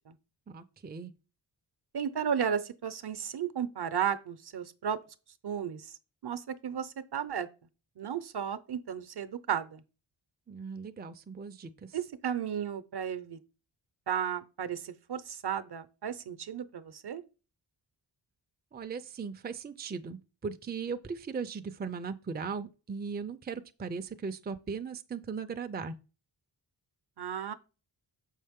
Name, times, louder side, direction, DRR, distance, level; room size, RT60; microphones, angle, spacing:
voice 1, 0.5-1.1 10.5-12.0 18.7-25.9, right 5 dB, 20° right, 0.5 m, -38 dB
voice 2, 1.9-5.0 5.4-5.9 6.2-7.5 8.0-9.8 11.9-13.4 14.1-17.2 27.2-27.5, right 8 dB, 60° right, 0.8 m, -34 dB
7.0 x 5.5 x 3.6 m
wide cardioid pair, 120°, 45 cm